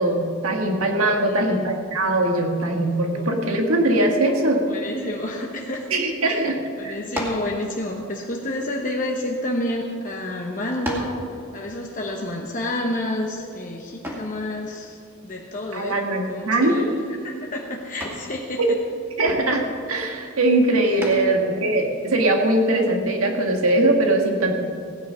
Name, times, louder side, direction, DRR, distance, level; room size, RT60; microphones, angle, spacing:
voice 1, 0.0-4.6 5.9-6.6 6.8-7.0 15.7-16.9 18.6-18.7 19.2-24.6, right 1 dB, 80° right, 3 dB, 1.7 m, -21 dB
voice 2, 1.2-1.6 3.1-3.3 4.6-6.3 6.8-11.2 11.5-15.0 15.2-16.0 16.3-16.9 17.2-18.8 20.9-21.2, left 1 dB, 40° left, 0 dB, 1.0 m, -29 dB
sound 1, 7.1-7.5 8.5-9.6 10.3-10.4 10.8-11.2 14.0-14.4 16.3-16.7 17.0-17.4 18.0-18.3 21.0-21.4, equal, 10° right, 2.3 m, -32 dB
16.5 x 9.2 x 5.6 m, 2.4 s
head